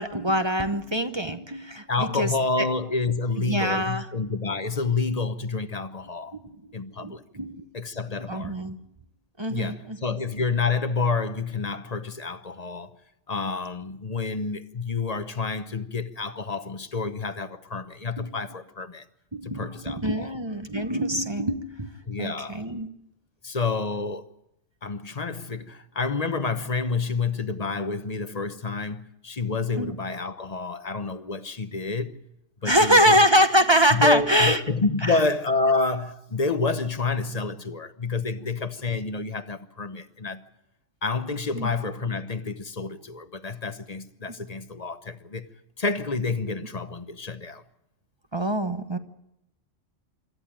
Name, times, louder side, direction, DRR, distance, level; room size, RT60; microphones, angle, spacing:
voice 1, 0.0-2.3 2.6-2.7 3.4-4.1 6.3-6.6 7.0-7.6 8.3-8.8 9.4-10.0 18.2-18.3 19.3-21.9 22.2-22.9 29.8-29.9 32.6-34.6 35.0-35.2 41.5-41.7 48.3-49.0, equal, 25° right, 1.0 m, -24 dB
voice 2, 1.9-6.4 6.7-7.2 7.7-8.5 9.5-13.0 13.3-19.0 19.4-20.3 22.1-22.6 23.4-24.3 24.8-32.2 32.6-33.2 33.9-40.4 41.0-45.5 45.8-47.6, left 4 dB, 35° left, 1.0 m, -28 dB
26.0 x 13.5 x 8.9 m
omnidirectional pair, 1.3 m